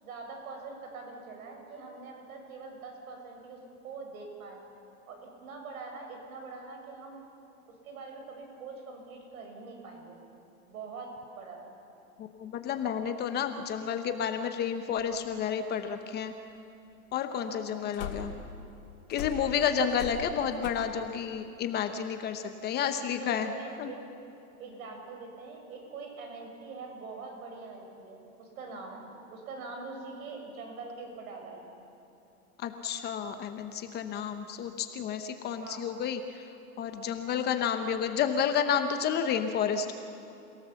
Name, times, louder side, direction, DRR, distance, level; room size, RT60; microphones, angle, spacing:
voice 1, 0.0-4.6 5.1-7.2 7.8-10.2 10.7-11.7 17.5-17.6 19.6-20.0 23.2-24.0 24.6-31.8 35.6-35.8, right 4 dB, 70° right, 3 dB, 6.5 m, -44 dB
voice 2, 12.2-16.3 17.1-18.3 19.1-23.5 23.8-23.9 32.6-36.4 36.8-39.9, left 7 dB, 20° left, 7 dB, 0.9 m, -31 dB
sound 1, 15.0-15.1 17.9-18.5 19.1-20.7, left 7 dB, 65° left, 3.7 m, -39 dB
29.0 x 17.5 x 7.1 m, 2.8 s
hypercardioid pair, 140°, 44 cm